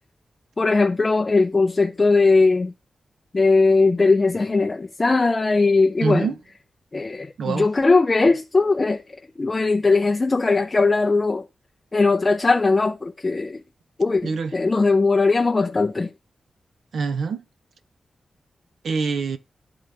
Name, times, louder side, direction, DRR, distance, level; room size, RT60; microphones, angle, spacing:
voice 1, 0.6-2.7 3.3-6.3 6.9-9.0 9.4-11.4 11.9-13.6 14.0-16.1, left 3 dB, 30° left, 0.4 m, -19 dB
voice 2, 6.0-6.4 7.4-7.7 14.2-14.5 16.9-17.4 18.8-19.4, right 5 dB, 80° right, 0.7 m, -25 dB
11.0 x 3.8 x 3.3 m
wide cardioid pair, 100°, 0 cm